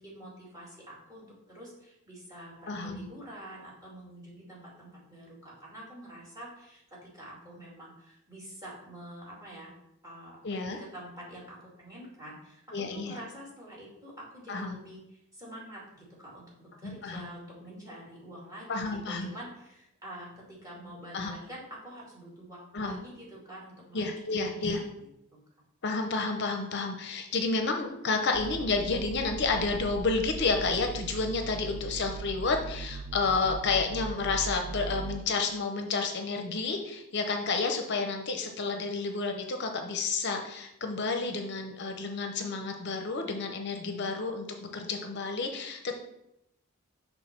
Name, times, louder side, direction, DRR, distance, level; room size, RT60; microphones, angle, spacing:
voice 1, 0.0-9.7 10.0-18.7 19.1-24.1 24.4-25.4, right 1 dB, 15° right, -5 dB, 2.3 m, -47 dB
voice 2, 2.7-3.1 10.4-10.8 12.7-13.2 14.5-14.8 16.8-17.2 18.7-19.3 21.1-21.3 22.7-23.0 23.9-24.8 25.8-46.0, left 4 dB, 50° left, 4 dB, 0.6 m, -30 dB
sound 1, 28.3-35.2, right 3 dB, 50° right, 0.3 m, -39 dB
6.2 x 3.4 x 5.9 m, 0.82 s
head